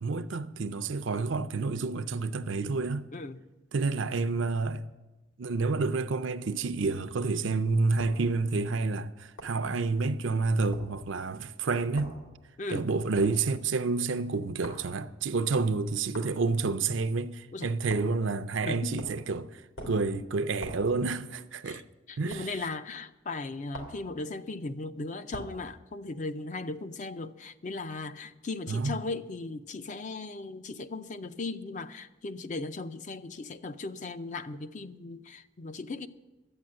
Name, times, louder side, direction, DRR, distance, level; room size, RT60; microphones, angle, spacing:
voice 1, 0.0-3.1 3.7-4.8 5.4-12.1 12.7-19.5 19.9-21.8 22.2-22.5 28.7-29.0, right 3 dB, 75° right, 0.6 m, -29 dB
voice 2, 3.1-3.4 12.6-12.9 17.5-17.7 18.6-19.0 21.6-21.8 22.1-36.1, left 3 dB, 40° left, 0.5 m, -37 dB
sound 1, 8.0-8.2 9.4-9.6 10.7-10.9 12.0-12.2 13.2-13.4 14.6-14.9 16.1-16.3 17.9-18.2 19.0-19.3 19.8-20.1 20.6-20.9 22.3-22.5 23.7-24.0 25.3-25.6, right 1 dB, 85° left, 2.9 m, -42 dB
12.0 x 8.6 x 7.6 m
head